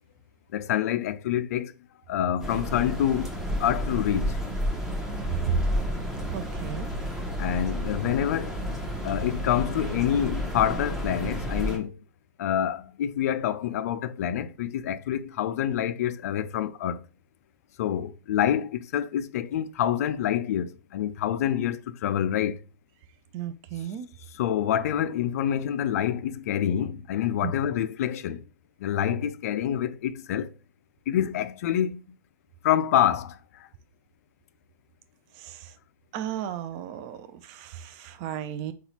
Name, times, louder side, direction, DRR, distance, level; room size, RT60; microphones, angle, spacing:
voice 1, 0.5-1.7 2.1-4.5 7.4-8.6 9.0-12.0 12.4-17.1 17.8-22.6 24.3-28.4 28.8-30.5 31.1-32.2 32.6-33.7, left 10 dB, 55° left, 0.3 m, -27 dB
sound 1, 2.4-11.8, equal, 5° right, 0.8 m, -31 dB
voice 2, 6.3-6.9 23.3-24.1 27.4-27.5 35.4-35.7 36.1-38.7, right 10 dB, 35° right, 0.4 m, -35 dB
3.9 x 2.3 x 2.9 m
figure-of-eight pair, 110°, 10 cm